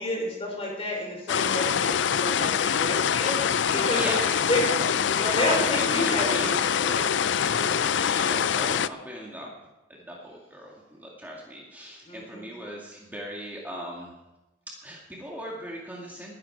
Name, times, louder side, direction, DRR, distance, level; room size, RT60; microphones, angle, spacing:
voice 1, 0.0-4.1 4.5-7.1 12.1-12.5, left 1 dB, 35° left, -1 dB, 5.5 m, -30 dB
sound 1, 1.3-8.9, left 8 dB, 80° left, 0.4 m, -24 dB
voice 2, 3.7-4.3 5.4-6.6 7.5-9.5 10.1-10.7 11.0-14.1 14.8-16.3, equal, 10° right, -3 dB, 2.2 m, -38 dB
20.0 x 11.0 x 4.7 m, 1.0 s
head